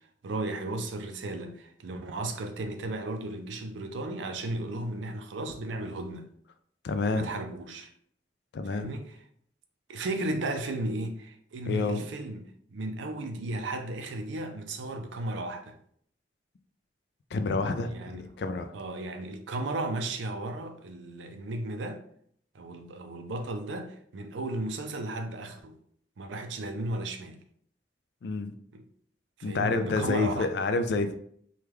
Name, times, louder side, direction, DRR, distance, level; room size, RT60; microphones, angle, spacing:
voice 1, 0.2-6.3 7.1-7.9 8.7-9.1 9.9-15.8 17.9-18.2 18.7-22.0 22.5-25.8 26.2-27.4 28.7-28.8 29.4-30.5, right 2 dB, 90° right, 0.4 m, -35 dB
voice 2, 6.8-7.3 8.5-8.9 11.6-12.0 17.3-18.7 28.2-28.5 29.4-31.2, left 3 dB, 70° left, 0.3 m, -28 dB
3.4 x 2.3 x 3.0 m
head